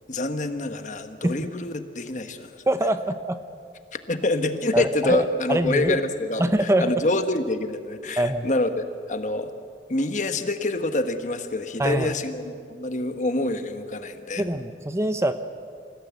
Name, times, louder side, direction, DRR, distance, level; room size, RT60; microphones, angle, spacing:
voice 1, 0.1-2.6 3.9-9.5 9.9-14.4, left 2 dB, 45° left, 8 dB, 1.3 m, -26 dB
voice 2, 2.7-3.4 4.7-6.0 6.4-7.0 8.2-8.5 11.8-12.1 14.4-15.3, right 1 dB, 15° right, 10 dB, 0.7 m, -24 dB
26.5 x 16.0 x 8.3 m, 2.3 s
head